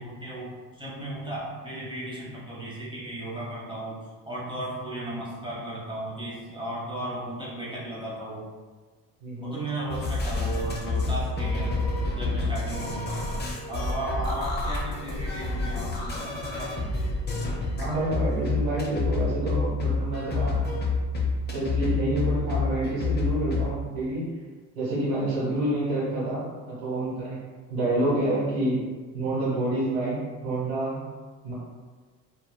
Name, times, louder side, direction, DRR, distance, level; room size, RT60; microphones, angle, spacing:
voice 1, 0.0-4.0 4.2-8.5 9.4-11.8 12.2-13.4 13.7-16.8, right 1 dB, 10° right, -7 dB, 1.0 m, -35 dB
voice 2, 9.2-9.6 17.8-20.6 21.5-24.2 24.7-26.4 26.7-27.4 27.7-28.8 29.1-31.0 31.4-31.5, right 1 dB, 85° right, -8 dB, 1.1 m, -28 dB
sound 1, 9.9-23.7, left 3 dB, 25° left, 0.5 m, -28 dB
2.7 x 2.2 x 2.2 m, 1.4 s
supercardioid pair, 70°, 45 cm